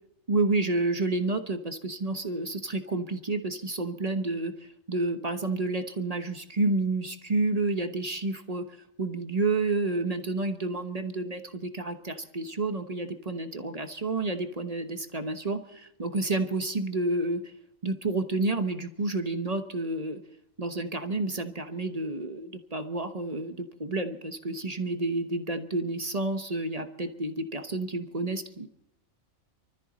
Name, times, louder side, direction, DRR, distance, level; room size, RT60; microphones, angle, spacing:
voice 1, 0.3-4.5 4.9-8.7 9.0-17.5 17.8-20.2 20.6-28.7, right 2 dB, 30° right, 8 dB, 1.0 m, -30 dB
24.5 x 13.5 x 4.1 m, 0.80 s
omnidirectional pair, 1.5 m